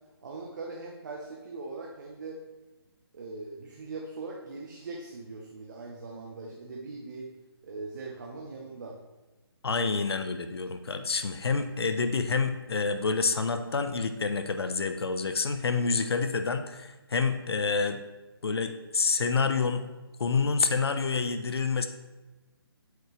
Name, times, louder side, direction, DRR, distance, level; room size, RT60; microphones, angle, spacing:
voice 1, 0.2-2.4 3.1-7.3 7.6-9.0 9.8-9.9, right 3 dB, 45° right, -1 dB, 0.8 m, -40 dB
voice 2, 9.6-18.0 18.4-19.8 20.2-21.9, left 4 dB, 75° left, 8 dB, 0.7 m, -28 dB
7.9 x 4.9 x 3.2 m, 1.1 s
hypercardioid pair, 160°, 13 cm